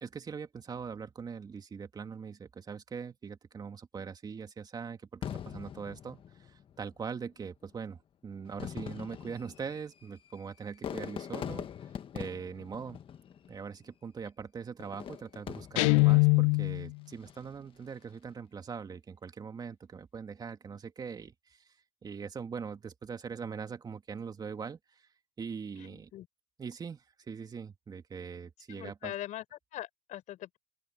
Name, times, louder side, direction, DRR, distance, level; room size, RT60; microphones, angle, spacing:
voice 1, 0.0-11.7 12.1-13.0 13.5-21.7 22.0-25.1 25.4-26.1 26.6-29.1, right 6 dB, 25° right, 2.6 m, -42 dB
Fireworks, 5.2-6.8 7.7-7.8 8.4-13.7 14.8-16.6 17.1-17.6, left 8 dB, 35° left, 1.6 m, -42 dB
Guitar, 15.8-16.9, left 32 dB, 85° left, 0.6 m, -22 dB
voice 2, 25.7-26.3 28.7-30.6, left 13 dB, 50° left, 5.0 m, -42 dB
open air
supercardioid pair, 115°, 16 cm